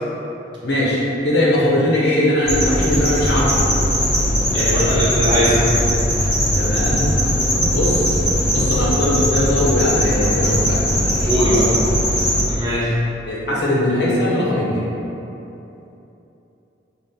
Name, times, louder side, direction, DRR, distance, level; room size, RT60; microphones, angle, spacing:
voice 1, 0.6-3.7 4.5-5.7 6.5-7.2 7.5-8.1 8.5-11.8 13.3-14.8, left 1 dB, 75° left, -5 dB, 0.9 m, -20 dB
sound 1, 2.4-12.4, equal, 15° left, 1.1 m, -19 dB
voice 2, 4.5-5.6 11.3-11.8 12.4-12.9, equal, 25° right, -8 dB, 0.8 m, -21 dB
5.9 x 2.2 x 3.6 m, 2.9 s
head